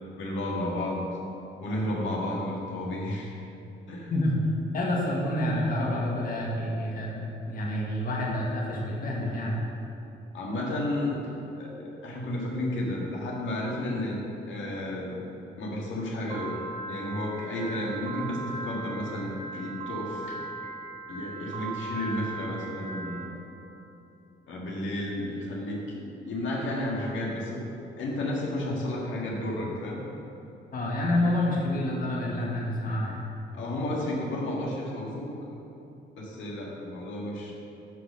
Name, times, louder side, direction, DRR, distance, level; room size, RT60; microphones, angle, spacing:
voice 1, 0.2-1.1 1.6-3.3 3.9-4.1 10.3-11.2 11.6-15.3 15.6-16.6 16.9-20.4 21.1-23.4 24.5-27.6 28.0-30.1 33.5-35.3 36.2-37.5, left 1 dB, 75° left, -3 dB, 1.8 m, -32 dB
voice 2, 4.1-4.4 4.7-9.5 30.7-33.2, left 1 dB, 45° left, -3 dB, 1.7 m, -28 dB
Piano, 16.3-23.3, right 3 dB, 40° right, 2.2 m, -38 dB
11.0 x 4.3 x 6.3 m, 2.9 s
cardioid pair, 90°, 20 cm